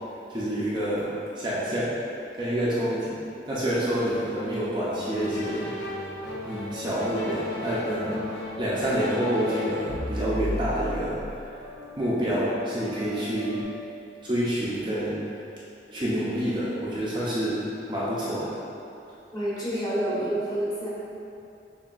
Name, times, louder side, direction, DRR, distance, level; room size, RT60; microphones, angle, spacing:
voice 1, 0.3-1.1 1.3-2.0 2.3-3.2 3.5-5.7 6.4-8.2 8.6-11.2 12.0-13.6 14.2-15.3 15.9-18.6, equal, 25° right, -9 dB, 0.5 m, -27 dB
sound 1, 4.9-13.6, left 1 dB, 75° left, 0.7 m, -35 dB
voice 2, 19.3-20.9, right 1 dB, 25° left, -10 dB, 1.1 m, -28 dB
6.9 x 2.6 x 2.5 m, 2.7 s
head